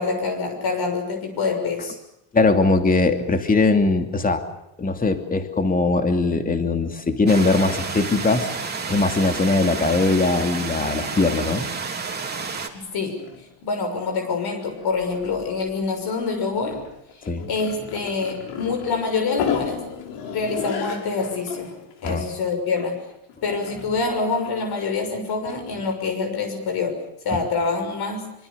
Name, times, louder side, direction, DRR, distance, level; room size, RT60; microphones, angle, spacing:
voice 1, 0.0-2.0 12.7-13.2 13.6-16.8 17.5-19.8 20.3-21.7 22.0-23.0 23.4-28.3, left 4 dB, 50° left, 5 dB, 6.4 m, -26 dB
voice 2, 2.3-4.4 4.8-8.5 8.9-11.7 17.2-17.5 22.0-22.2 27.3-27.4, left 3 dB, 15° left, 6 dB, 2.8 m, -20 dB
sound 1, 7.3-12.7, right 5 dB, 20° right, 3.6 m, -30 dB
sound 2, 12.5-12.6 12.9-13.5 14.0-14.3 14.6-15.8 16.3-26.0, left 7 dB, 90° left, 6.2 m, -35 dB
25.5 x 25.0 x 6.9 m, 0.83 s
cardioid pair, 150°, 49 cm